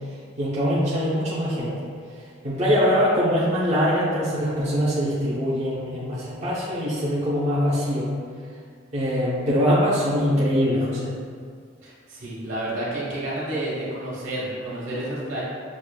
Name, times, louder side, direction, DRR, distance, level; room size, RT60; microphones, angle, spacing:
voice 1, 0.4-1.7 2.4-8.1 8.9-11.1, equal, 35° right, -10 dB, 0.6 m, -23 dB
voice 2, 11.8-15.4, right 1 dB, 75° right, -6 dB, 1.2 m, -30 dB
6.1 x 2.5 x 2.2 m, 2.1 s
head